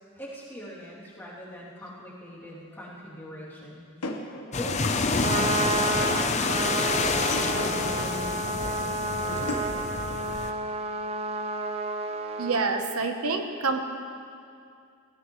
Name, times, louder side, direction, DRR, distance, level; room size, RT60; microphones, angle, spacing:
voice 1, 0.1-4.2 4.5-9.7 13.6-13.7, equal, 10° left, -8 dB, 2.8 m, -41 dB
sound 1, 1.9-2.0 4.0-5.1 7.1-7.9 9.3-9.8, left 2 dB, 90° left, 1.2 m, -35 dB
sound 2, 4.5-10.5, left 4 dB, 30° left, 0.6 m, -28 dB
Trumpet, 5.0-12.6, right 3 dB, 25° right, 0.6 m, -30 dB
voice 2, 12.4-13.8, right 4 dB, 80° right, 5 dB, 1.0 m, -27 dB
17.5 x 16.5 x 3.2 m, 2.4 s
head